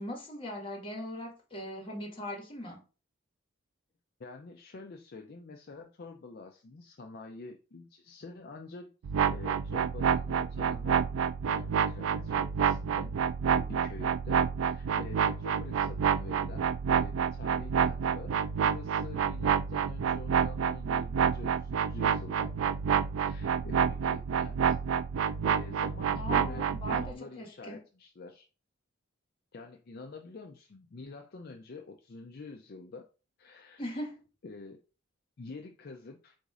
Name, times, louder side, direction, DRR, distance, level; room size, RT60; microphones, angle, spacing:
voice 1, 0.0-2.8 26.1-27.8 33.8-34.2, left 1 dB, 25° left, 1.5 m, -40 dB
voice 2, 4.2-8.9 9.3-11.1 11.5-13.1 13.5-25.0 25.4-28.5 29.5-33.1 33.4-33.9 34.4-34.8 35.4-36.4, left 3 dB, 50° left, 0.4 m, -47 dB
sound 1, 9.0-27.1, right 7 dB, 75° right, 0.3 m, -29 dB
4.0 x 2.6 x 4.7 m
head